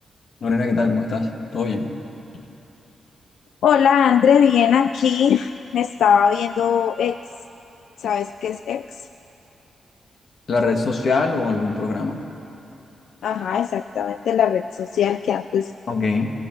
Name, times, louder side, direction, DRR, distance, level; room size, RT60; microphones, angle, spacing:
voice 1, 0.4-1.9 10.5-12.2 15.9-16.3, left 3 dB, 50° left, 4 dB, 1.8 m, -22 dB
voice 2, 3.6-7.2 8.0-8.8 13.2-15.7, left 8 dB, 85° left, 11 dB, 0.4 m, -19 dB
29.0 x 17.5 x 6.1 m, 2.9 s
wide cardioid pair, 140°, 0 cm